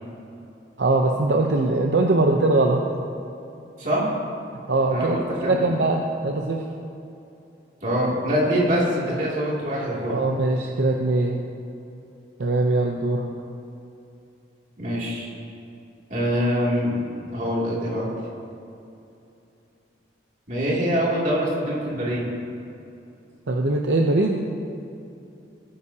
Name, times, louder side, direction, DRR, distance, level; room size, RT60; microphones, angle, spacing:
voice 1, 0.8-2.9 4.7-6.7 10.1-11.4 12.4-13.3 23.5-24.5, right 2 dB, 65° right, 1 dB, 0.7 m, -21 dB
voice 2, 3.8-4.2 4.9-5.8 7.8-10.2 14.8-15.3 16.1-18.1 20.5-22.2, equal, 40° right, -5 dB, 2.7 m, -24 dB
19.0 x 9.8 x 2.8 m, 2.8 s
head